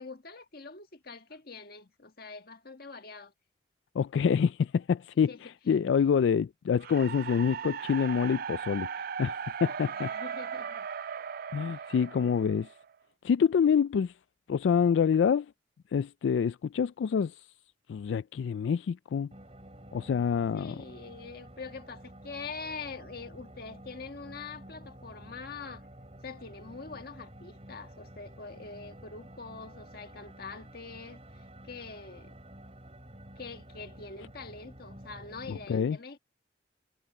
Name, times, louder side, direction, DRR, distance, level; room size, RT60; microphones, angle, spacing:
voice 1, 0.0-3.3 5.2-5.7 9.8-10.9 11.7-11.9 20.5-25.9 26.2-32.4 33.4-36.2, left 4 dB, 55° left, 1.6 m, -44 dB
voice 2, 3.9-5.3 5.7-8.9 9.2-10.1 11.5-12.7 13.2-14.1 14.5-15.5 15.9-17.4 17.9-19.3 19.9-20.7 35.5-36.0, left 7 dB, 85° left, 0.3 m, -26 dB
sound 1, 6.8-12.9, right 7 dB, 55° right, 0.3 m, -38 dB
sound 2, 19.3-35.7, right 1 dB, 35° right, 5.9 m, -50 dB
head